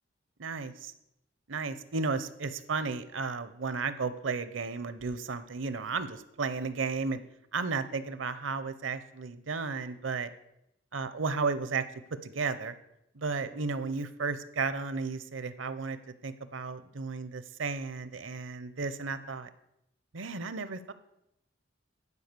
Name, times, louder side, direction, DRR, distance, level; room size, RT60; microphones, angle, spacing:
voice 1, 0.4-0.9 1.5-7.2 7.5-10.3 10.9-11.8 12.2-12.7 13.2-16.0 16.2-19.5 20.1-20.9, right 4 dB, 70° right, 13 dB, 0.7 m, -33 dB
11.0 x 5.0 x 6.7 m, 0.82 s
head